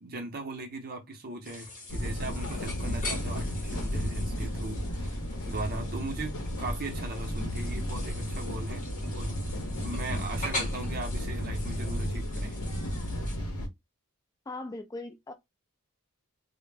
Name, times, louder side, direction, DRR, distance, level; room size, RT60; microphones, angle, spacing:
voice 1, 0.0-5.2 5.4-8.8 9.1-9.5 9.8-12.6, right 2 dB, 40° right, 0.6 m, -39 dB
sound 1, 1.4-13.4, left 1 dB, 35° left, 0.8 m, -42 dB
sound 2, 1.9-13.7, equal, 70° left, 0.7 m, -33 dB
voice 2, 14.5-15.3, left 2 dB, 15° left, 0.3 m, -39 dB
2.0 x 2.0 x 3.3 m
head